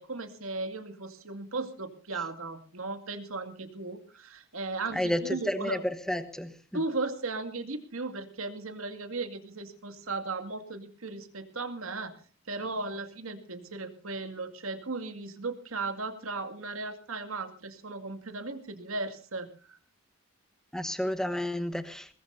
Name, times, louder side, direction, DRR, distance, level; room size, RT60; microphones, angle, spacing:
voice 1, 0.0-5.8 6.7-12.1 12.5-19.8, right 3 dB, 80° right, 2.3 m, -36 dB
voice 2, 4.9-6.5 20.7-22.1, left 1 dB, 5° left, 1.2 m, -31 dB
22.5 x 19.5 x 2.7 m
head